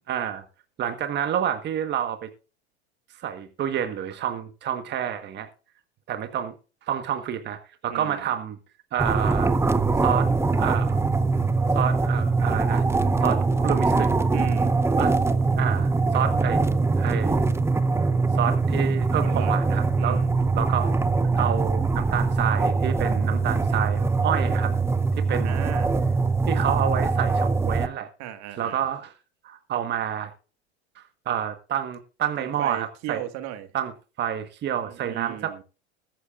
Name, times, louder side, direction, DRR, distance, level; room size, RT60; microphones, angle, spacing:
voice 1, 0.1-0.4 0.8-2.3 3.2-5.5 6.1-6.5 6.8-8.6 8.9-9.5 10.0-11.0 11.7-12.8 13.2-14.1 15.0-15.1 15.6-17.5 18.3-20.2 20.5-20.9 21.4-24.7 25.3-25.6 26.5-28.1 28.6-29.1 29.4-30.3 30.9-33.2 33.7-33.9 34.2-35.5, right 9 dB, 30° right, 1.4 m, -28 dB
voice 2, 7.9-8.3 14.3-14.7 19.2-19.6 20.0-20.4 25.4-26.0 28.2-28.9 32.4-33.7 34.8-35.6, right 12 dB, 50° right, 1.8 m, -36 dB
sound 1, 9.0-27.9, right 3 dB, 10° right, 0.7 m, -22 dB
21.5 x 8.1 x 2.5 m
hypercardioid pair, 105°, 34 cm